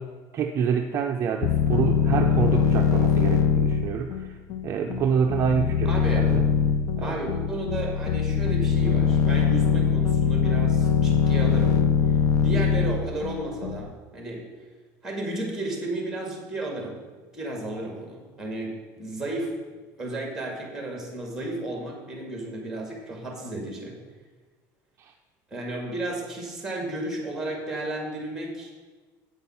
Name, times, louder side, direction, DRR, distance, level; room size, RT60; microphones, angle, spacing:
voice 1, 0.0-4.4 4.6-6.4 7.0-7.2 25.0-25.1, right 6 dB, 35° right, 4 dB, 0.5 m, -27 dB
sound 1, 1.4-13.9, left 7 dB, 45° left, 0.4 m, -22 dB
voice 2, 5.9-6.3 7.0-11.8 12.4-14.4 15.0-17.0 17.3-19.5 20.0-24.0 25.5-28.7, right 2 dB, 5° right, 1 dB, 2.0 m, -33 dB
8.3 x 5.7 x 5.7 m, 1.4 s
cardioid pair, 145°, 8 cm